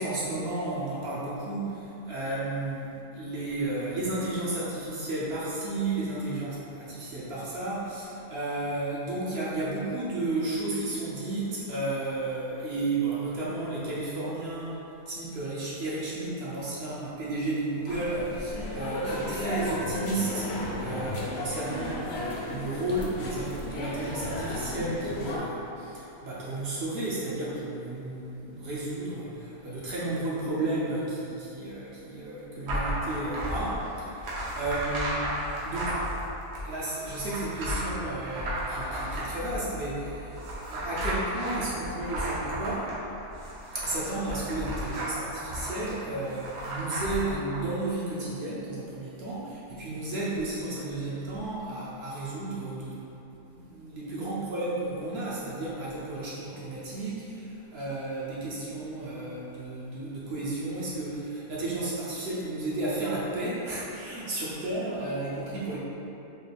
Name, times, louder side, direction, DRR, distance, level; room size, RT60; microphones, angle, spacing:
voice 1, 0.0-14.8 15.1-34.3 34.5-35.3 35.6-35.9 36.6-40.4 40.7-42.9 43.7-53.0 53.4-65.8, right 2 dB, 65° right, -7 dB, 0.6 m, -33 dB
sound 1, 17.9-25.4, left 1 dB, 65° left, 0.6 m, -34 dB
Flipping Papers, 32.7-47.6, equal, 80° right, 1.4 m, -34 dB
4.4 x 2.4 x 3.3 m, 3.0 s
omnidirectional pair, 1.7 m